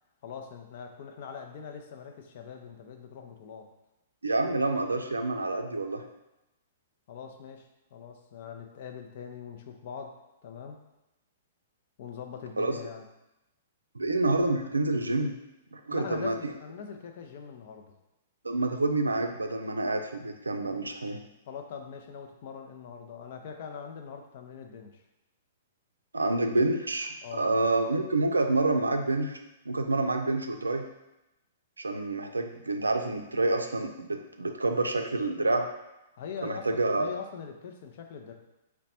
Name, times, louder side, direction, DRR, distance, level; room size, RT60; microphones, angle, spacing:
voice 1, 0.2-3.7 7.1-10.2 10.4-10.8 12.0-13.1 15.9-17.9 21.5-25.0 27.2-27.5 36.2-38.3, left 6 dB, 50° left, 4 dB, 0.5 m, -42 dB
voice 2, 4.2-6.0 12.6-12.8 13.9-15.3 15.7-16.3 18.4-21.2 26.1-29.4 29.7-30.9 31.8-35.7 36.4-37.1, right 2 dB, 85° right, 5 dB, 0.4 m, -28 dB
4.0 x 2.2 x 4.2 m, 0.94 s
figure-of-eight pair, 110°, 0 cm